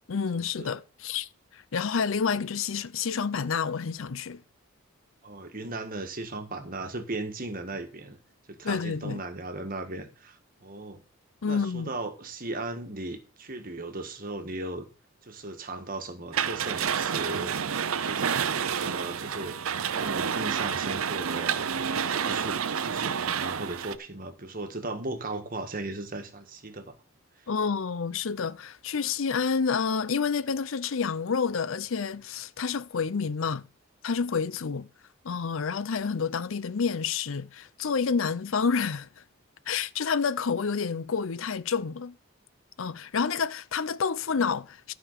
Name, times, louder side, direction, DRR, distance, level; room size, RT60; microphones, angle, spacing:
voice 1, 0.1-4.4 8.6-9.2 11.4-11.9 27.5-33.7 34.0-34.9 35.2-39.1 39.7-42.1 42.8-44.9, left 5 dB, 65° left, 0.6 m, -29 dB
voice 2, 5.2-8.2 8.5-11.0 11.5-14.9 15.2-17.6 18.1-19.5 19.9-21.6 22.1-26.9, right 2 dB, 40° right, 1.6 m, -37 dB
sound 1, 16.3-24.0, right 7 dB, 85° right, 0.7 m, -29 dB
13.0 x 5.1 x 6.7 m
head